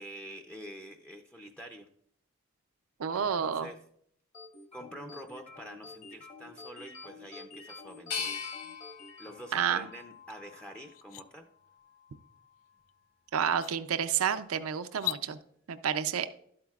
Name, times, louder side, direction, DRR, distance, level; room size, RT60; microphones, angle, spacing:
voice 1, 0.0-1.9 3.1-3.8 4.7-8.4 9.2-11.5, equal, 5° left, 4 dB, 0.5 m, -47 dB
voice 2, 3.0-3.7 9.5-9.9 13.3-15.4 15.7-16.3, right 8 dB, 85° right, 10 dB, 0.5 m, -30 dB
sound 1, 4.3-10.1, left 3 dB, 35° left, 1.0 m, -49 dB
sound 2, 8.1-11.0 11.6-12.4, left 6 dB, 85° left, 3.2 m, -41 dB
sound 3, 10.3-10.4 10.8-11.2 12.9-13.0 13.5-13.8 14.9-15.2, left 17 dB, 70° left, 0.3 m, -37 dB
12.0 x 8.6 x 2.3 m, 0.68 s
head